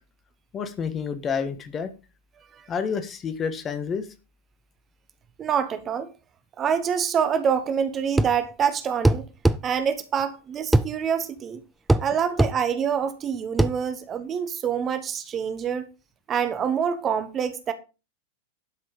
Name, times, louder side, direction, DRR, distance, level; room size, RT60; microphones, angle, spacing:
voice 1, 0.5-1.9 2.7-4.1, left 6 dB, 25° left, 1.5 m, -29 dB
voice 2, 5.4-6.1 6.6-9.3 9.6-11.6 12.0-15.9 16.3-17.7, right 7 dB, 25° right, 1.2 m, -26 dB
sound 1, 8.2-8.4 9.0-9.6 10.7-10.9 11.9-12.1 12.4-12.6 13.6-13.8, right 1 dB, 5° right, 0.6 m, -19 dB
11.5 x 6.3 x 5.0 m
figure-of-eight pair, 90°, 0 cm